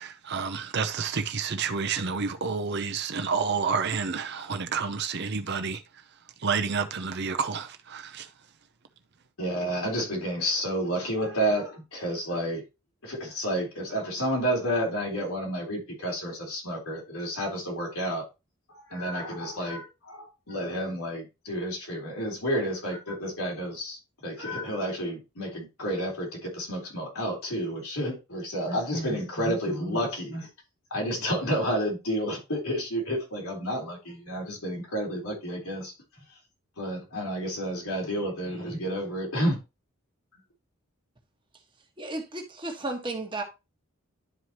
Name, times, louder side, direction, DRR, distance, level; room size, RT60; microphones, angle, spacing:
voice 1, 0.0-5.8 6.4-8.3, right 5 dB, 50° right, 0.7 m, -29 dB
voice 2, 9.4-12.6 13.0-18.2 18.7-30.5 30.9-35.9 36.8-39.6, equal, 75° left, 3.5 m, -30 dB
voice 3, 42.0-43.4, right 2 dB, 20° right, 1.4 m, -33 dB
11.0 x 4.9 x 2.9 m
head